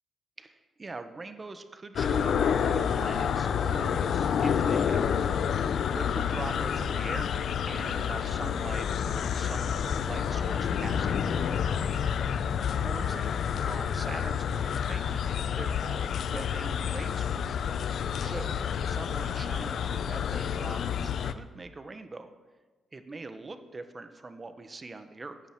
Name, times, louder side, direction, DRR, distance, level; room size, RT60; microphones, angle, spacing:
voice 1, 0.4-5.4 5.9-7.3 7.6-11.6 12.8-17.5 18.2-22.3 22.9-25.4, right 3 dB, 25° right, 9 dB, 1.4 m, -42 dB
sound 1, 2.0-21.3, left 8 dB, 65° left, 0.7 m, -29 dB
14.5 x 8.1 x 9.6 m, 1.3 s
cardioid pair, 100°, 0 cm